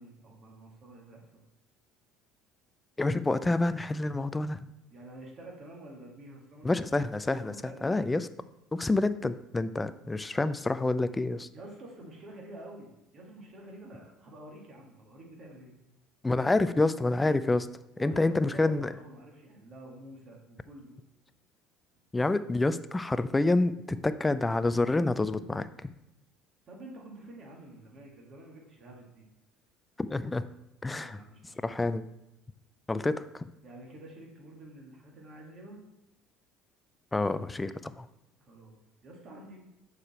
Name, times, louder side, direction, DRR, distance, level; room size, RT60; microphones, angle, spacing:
voice 1, 0.0-1.4 4.9-8.2 11.5-15.8 18.0-21.0 21.2-21.3 26.7-29.3 30.9-31.6 33.6-35.8 38.4-39.6, right 1 dB, 45° right, -1 dB, 2.1 m, -48 dB
voice 2, 3.0-4.7 6.6-7.5 7.8-8.3 8.7-11.5 16.2-17.7 18.0-18.9 22.1-25.9 30.1-30.4 30.8-31.2 31.6-32.1 32.9-33.5 37.1-38.1, left 2 dB, 15° left, 13 dB, 0.4 m, -28 dB
6.6 x 4.8 x 4.3 m, 0.93 s
hypercardioid pair, 65°, 0 cm